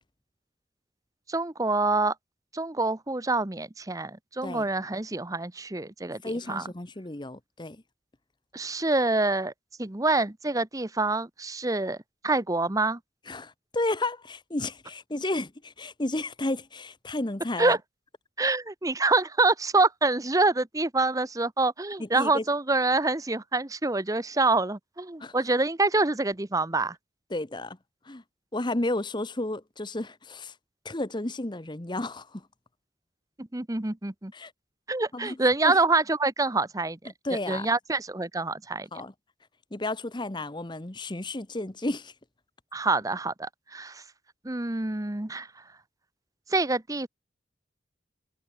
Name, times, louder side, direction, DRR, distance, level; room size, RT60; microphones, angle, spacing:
voice 1, 1.3-2.1 2.5-6.2 6.5-6.6 8.5-9.5 9.8-12.0 12.2-13.0 17.6-17.8 18.4-27.0 33.4-34.3 34.9-37.0 37.5-38.9 42.7-44.0 44.4-45.5 46.5-47.1, right 3 dB, 20° right, 0.9 m, -26 dB
voice 2, 6.2-7.8 13.3-17.8 22.0-22.4 25.2-25.3 27.3-27.8 28.0-28.2 28.5-30.5 30.8-32.5 34.3-34.5 35.1-35.4 35.6-35.8 37.2-37.7 38.9-39.1 39.7-42.1, left 2 dB, 25° left, 1.1 m, -32 dB
head